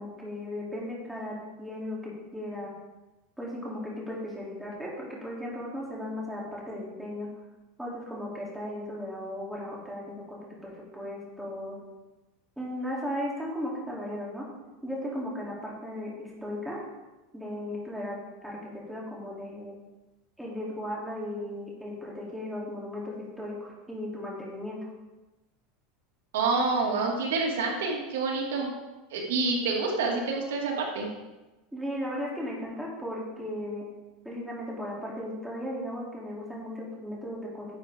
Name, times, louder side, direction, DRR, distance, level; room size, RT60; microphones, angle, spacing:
voice 1, 0.0-2.7 3.4-7.3 7.8-11.8 12.6-14.4 14.8-16.8 17.3-19.8 20.4-24.8 31.7-33.8 34.2-37.7, left 1 dB, 5° right, -5 dB, 3.2 m, -36 dB
voice 2, 26.3-28.7 29.1-31.1, right 3 dB, 90° right, -1 dB, 2.4 m, -27 dB
10.5 x 8.8 x 3.7 m, 1.1 s
supercardioid pair, 135°, 0 cm